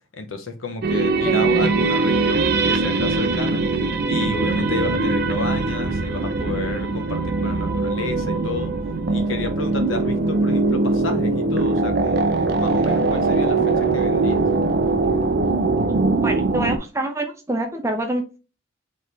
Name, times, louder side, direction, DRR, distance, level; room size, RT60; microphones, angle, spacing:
voice 1, 0.1-3.7 4.1-8.7 9.1-14.4, left 3 dB, 80° left, 0.9 m, -31 dB
sound 1, 0.8-16.8, right 3 dB, 50° right, 0.5 m, -21 dB
voice 2, 1.3-1.7 16.2-18.4, right 1 dB, 15° right, 0.7 m, -26 dB
4.2 x 3.2 x 3.3 m
head